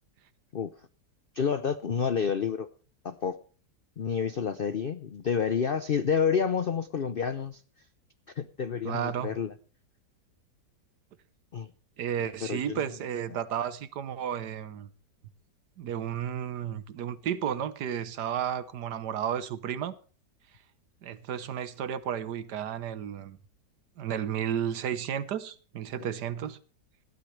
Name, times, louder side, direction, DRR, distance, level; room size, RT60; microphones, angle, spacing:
voice 1, 1.3-2.7 3.0-3.4 4.0-7.6 8.4-9.5 11.5-11.7 12.5-12.8, left 6 dB, 70° left, 0.5 m, -29 dB
voice 2, 8.8-9.3 12.0-14.9 15.8-19.9 21.0-23.4 24.0-26.6, right 9 dB, 70° right, 1.5 m, -33 dB
18.5 x 12.5 x 3.3 m
omnidirectional pair, 1.9 m